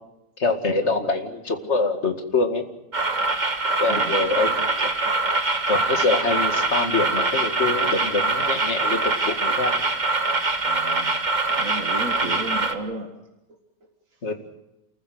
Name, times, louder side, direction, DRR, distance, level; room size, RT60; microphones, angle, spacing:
voice 1, 0.4-2.7 3.8-4.9 5.7-9.8 12.2-12.3 14.2-14.3, left 3 dB, 55° left, 6 dB, 2.5 m, -25 dB
sound 1, 2.9-12.7, right 2 dB, 35° right, 1.6 m, -23 dB
voice 2, 10.7-11.2 11.4-13.1 13.8-13.9, right 2 dB, 75° right, 4 dB, 2.3 m, -34 dB
29.0 x 14.5 x 7.9 m, 0.89 s
omnidirectional pair, 1.4 m